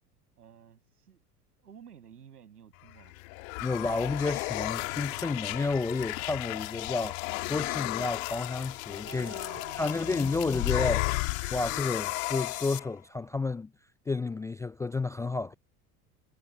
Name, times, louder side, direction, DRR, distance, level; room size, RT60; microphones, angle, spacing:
voice 1, 0.4-1.2 1.6-3.2 9.0-10.7, right 8 dB, 80° right, 7.5 m, -51 dB
sound 1, 2.9-12.9, left 26 dB, 60° left, 2.2 m, -34 dB
voice 2, 3.6-7.2 7.5-9.3 9.8-11.1 11.5-13.7 14.1-15.5, left 3 dB, 5° left, 0.4 m, -31 dB
sound 2, 7.8-12.8, left 12 dB, 40° left, 4.2 m, -44 dB
figure-of-eight pair, 80°, 46 cm